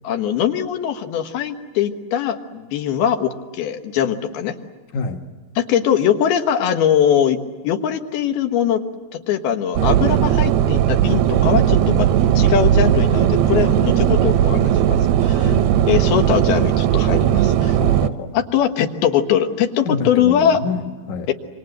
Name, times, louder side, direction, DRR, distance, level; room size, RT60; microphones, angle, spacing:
voice 1, 0.0-4.5 5.6-7.4 7.6-8.8 9.1-12.1 12.4-15.0 15.2-15.5 15.9-17.8 18.3-20.6 21.3-21.4, left 9 dB, 85° left, 6 dB, 3.3 m, -21 dB
sound 1, 9.8-18.1, right 10 dB, 85° right, 2.8 m, -17 dB
voice 2, 17.8-18.3 19.9-21.3, left 4 dB, 60° left, 5 dB, 2.6 m, -27 dB
27.0 x 25.5 x 7.9 m, 1.4 s
omnidirectional pair, 4.3 m